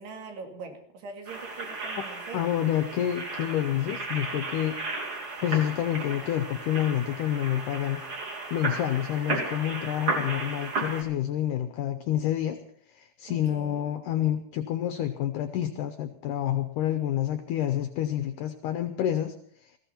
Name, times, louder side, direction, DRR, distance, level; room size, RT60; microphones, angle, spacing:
voice 1, 0.0-2.7 13.3-13.9, right 4 dB, 80° right, 3 dB, 4.2 m, -43 dB
sound 1, 1.3-11.0, right 3 dB, 35° right, 3.0 m, -34 dB
voice 2, 2.3-4.8 5.4-8.0 8.5-12.6 12.9-19.3 19.6-19.7, left 11 dB, 80° left, 9 dB, 1.8 m, -28 dB
19.5 x 15.0 x 4.4 m, 0.64 s
omnidirectional pair, 4.6 m